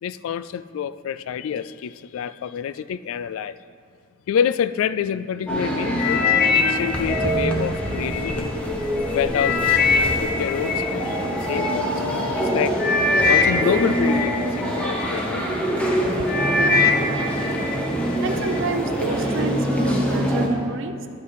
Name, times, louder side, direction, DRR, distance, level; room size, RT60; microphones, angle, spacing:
voice 1, 0.0-3.6 4.3-6.3 6.6-8.5 9.1-9.6 10.0-11.9 12.3-12.8 13.3-15.5 16.2-16.4, left 8 dB, 75° left, 0.3 m, -27 dB
sound 1, 5.5-20.5, equal, 5° left, 0.9 m, -25 dB
sound 2, 6.0-8.3 8.8-11.7 12.4-12.5 12.8-15.2 15.7-16.0 16.3-17.8 18.2-18.6 19.2-19.3, left 5 dB, 45° left, 0.6 m, -23 dB
voice 2, 17.8-21.1, right 3 dB, 65° right, 0.6 m, -29 dB
12.0 x 5.7 x 4.7 m
head